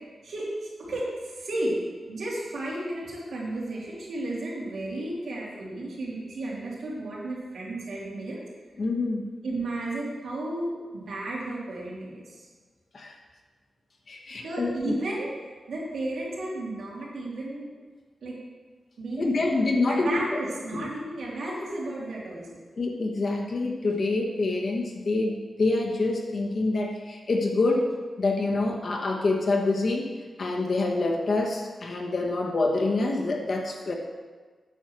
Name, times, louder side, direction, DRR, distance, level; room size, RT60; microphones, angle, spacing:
voice 1, 0.2-1.8 2.1-8.4 9.4-12.5 14.4-15.3 15.7-17.7 18.2-18.4 19.0-19.6 19.9-22.5, right 1 dB, 90° right, -6 dB, 3.3 m, -33 dB
voice 2, 8.8-9.3 12.9-13.1 14.1-14.9 19.2-20.2 20.7-20.9 22.8-30.1 30.4-33.9, left 2 dB, 45° left, 1 dB, 1.3 m, -26 dB
9.2 x 6.5 x 6.2 m, 1.4 s
wide cardioid pair, 175°, 0 cm